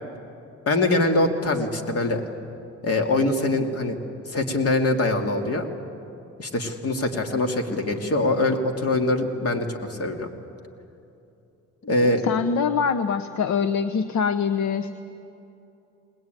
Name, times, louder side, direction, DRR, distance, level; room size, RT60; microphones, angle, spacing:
voice 1, 0.7-2.2 2.8-4.0 4.3-5.7 6.4-10.3 11.8-12.2, left 2 dB, 50° left, 4 dB, 2.4 m, -23 dB
voice 2, 12.2-14.9, left 6 dB, 70° left, 10 dB, 0.9 m, -24 dB
20.5 x 19.5 x 9.1 m, 2.8 s
cardioid pair, 90°, 30 cm